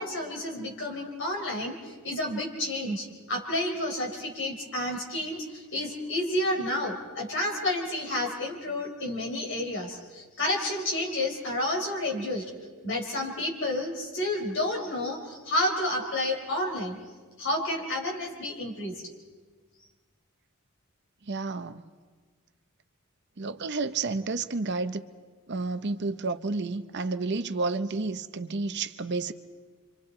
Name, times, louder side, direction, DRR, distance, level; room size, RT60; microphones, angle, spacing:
voice 1, 0.0-12.5 12.8-17.0 17.4-19.0, left 1 dB, 55° left, 4.1 m, -30 dB
voice 2, 21.3-21.8 23.4-25.0 25.5-29.3, right 3 dB, 50° right, 0.7 m, -30 dB
29.0 x 25.5 x 4.4 m
head